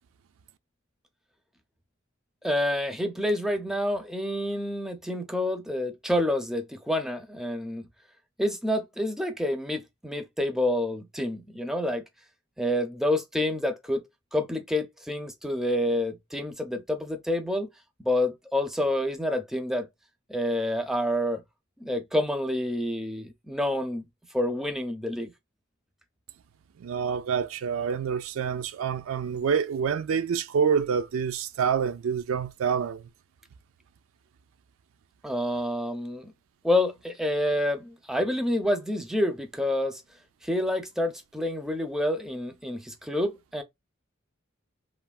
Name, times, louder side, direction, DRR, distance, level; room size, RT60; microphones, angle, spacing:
voice 1, 2.4-7.9 8.4-12.0 12.6-14.0 14.3-17.7 18.0-19.9 20.3-21.4 21.8-24.0 24.3-25.3 35.2-36.3 36.6-40.0 40.4-43.6, left 1 dB, ahead, 0.4 m, -28 dB
voice 2, 26.8-33.0, right 7 dB, 75° right, 0.3 m, -27 dB
3.2 x 2.0 x 2.3 m
head